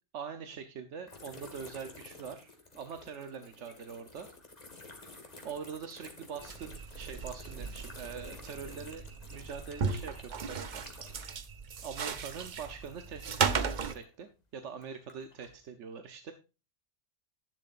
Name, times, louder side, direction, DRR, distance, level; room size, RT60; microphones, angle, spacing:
voice 1, 0.1-4.3 5.4-9.0 9.3-10.9 11.8-16.3, right 6 dB, 90° right, 8 dB, 1.2 m, -43 dB
sound 1, 1.1-11.4 11.7-14.2 14.7-15.6, left 3 dB, 35° left, 1.8 m, -52 dB
sound 2, 6.4-13.9, right 5 dB, 45° right, 0.8 m, -36 dB
10.5 x 10.5 x 2.5 m, 0.31 s
omnidirectional pair, 1.2 m